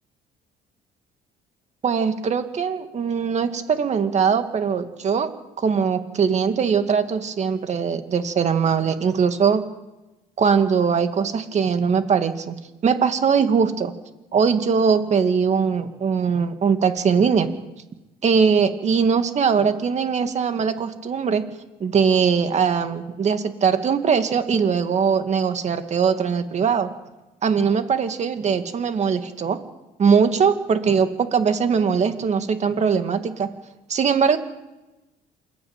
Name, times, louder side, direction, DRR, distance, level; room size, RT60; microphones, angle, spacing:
voice 1, 1.8-5.3 5.6-9.6 10.4-12.6 12.8-13.9 14.3-17.5 18.2-21.4 21.8-26.9 27.4-29.6 30.0-33.5 33.9-34.4, right 6 dB, 40° right, 8 dB, 2.2 m, -21 dB
27.5 x 12.0 x 9.0 m, 1.0 s
cardioid pair, 110°, 17 cm